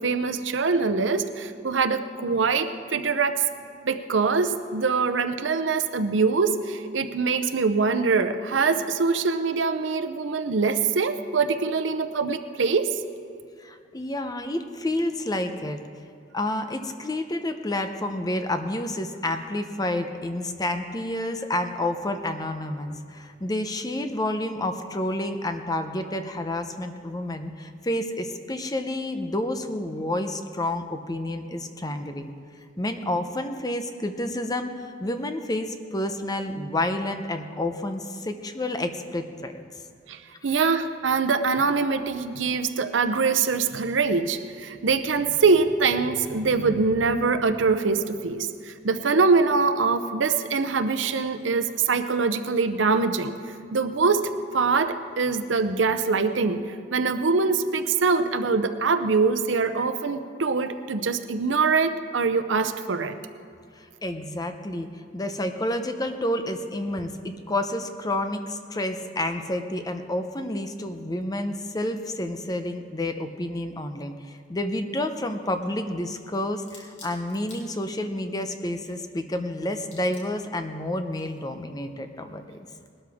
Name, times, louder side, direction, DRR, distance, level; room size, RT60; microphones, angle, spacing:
voice 1, 0.0-3.4 3.8-13.0 40.1-53.4 53.7-63.2, right 4 dB, 85° right, 9 dB, 0.7 m, -23 dB
voice 2, 13.6-15.8 16.3-32.3 32.8-39.5 59.8-59.9 63.8-82.4, left 1 dB, 20° left, 7 dB, 0.7 m, -29 dB
sound 1, 75.3-75.8 76.2-78.2 78.6-79.5 79.8-80.5 81.1-81.4, left 3 dB, 75° left, 3.0 m, -50 dB
19.5 x 12.5 x 3.6 m, 2.3 s
head